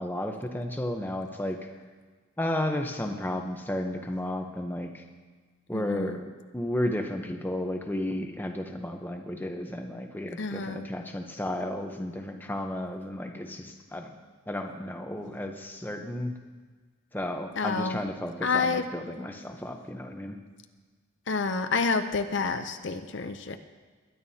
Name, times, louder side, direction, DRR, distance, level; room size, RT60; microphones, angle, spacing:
voice 1, 0.0-1.6 2.4-5.0 5.7-14.1 14.5-16.4 17.1-20.4, left 1 dB, 10° left, 3 dB, 0.8 m, -33 dB
voice 2, 5.7-6.2 10.4-10.9 17.6-18.0 18.4-18.8 21.3-23.6, left 4 dB, 60° left, 8 dB, 0.6 m, -28 dB
21.5 x 11.0 x 2.8 m, 1.4 s
head